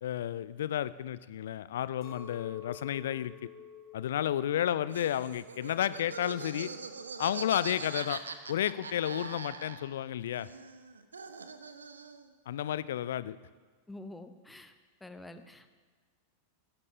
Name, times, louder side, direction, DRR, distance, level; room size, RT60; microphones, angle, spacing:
voice 1, 0.0-3.3 3.9-6.7 7.2-8.2 8.5-10.5 12.5-13.4, left 11 dB, 60° left, 17 dB, 0.4 m, -32 dB
Chink clink, 2.0-6.4 6.6-7.4, left 8 dB, 35° left, 3.1 m, -51 dB
Laughter, 4.9-10.1 10.3-12.3, right 5 dB, 75° right, 0.7 m, -43 dB
voice 2, 13.9-14.7 15.0-15.7, left 2 dB, 5° left, 9 dB, 0.8 m, -47 dB
18.5 x 11.0 x 2.7 m, 1.5 s
figure-of-eight pair, 90°, 0 cm